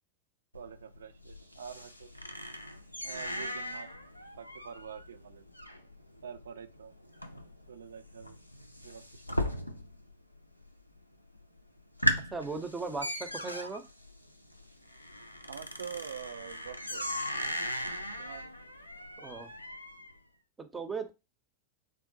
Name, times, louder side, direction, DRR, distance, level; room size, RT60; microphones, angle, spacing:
sound 1, 0.5-10.1 10.4-11.0 11.4-11.5 11.8-20.1, equal, 90° left, 0.3 m, -37 dB
voice 1, 0.5-2.1 3.0-3.9 4.4-5.4 6.2-6.9 7.3-8.4 8.8-9.6 15.4-17.1 18.2-18.5, right 7 dB, 65° right, 0.3 m, -46 dB
voice 2, 12.3-13.8 19.2-19.5 20.6-21.1, right 4 dB, 15° right, 0.5 m, -37 dB
3.7 x 2.0 x 2.6 m
figure-of-eight pair, 90°, 0 cm